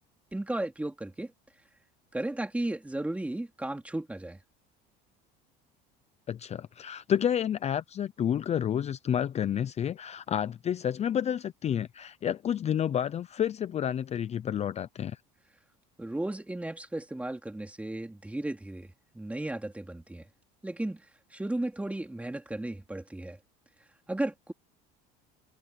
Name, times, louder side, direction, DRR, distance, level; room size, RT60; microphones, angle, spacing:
voice 1, 0.3-1.3 2.1-4.4 16.0-20.2 20.6-21.0 21.3-23.4 24.1-24.5, right 1 dB, 5° right, 3.1 m, -34 dB
voice 2, 6.3-15.2, left 9 dB, 35° left, 0.6 m, -30 dB
cardioid pair, 120°, 20 cm